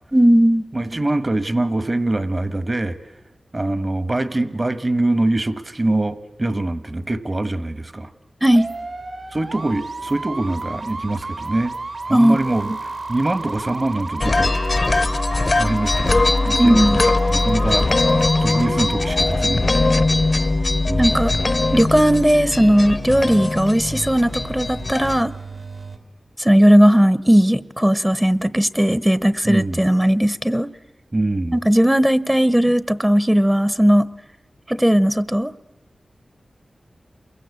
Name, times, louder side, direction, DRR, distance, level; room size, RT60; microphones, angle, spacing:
voice 1, 0.1-0.6 8.4-8.7 12.1-12.7 16.6-17.0 21.0-21.3 21.7-25.3 26.4-30.7 31.5-34.1 34.7-35.5, equal, 10° right, 16 dB, 0.9 m, -16 dB
voice 2, 0.7-3.0 3.5-8.1 9.3-11.7 12.0-14.7 15.6-17.9 18.4-20.0 20.9-21.2 29.4-29.8 31.1-31.6, right 2 dB, 35° right, 14 dB, 1.4 m, -24 dB
sound 1, 8.5-26.0, right 3 dB, 70° right, 3.4 m, -33 dB
sound 2, 14.2-25.2, left 2 dB, 50° left, 0.8 m, -20 dB
28.5 x 22.5 x 8.3 m, 1.1 s
cardioid pair, 55°, 0 cm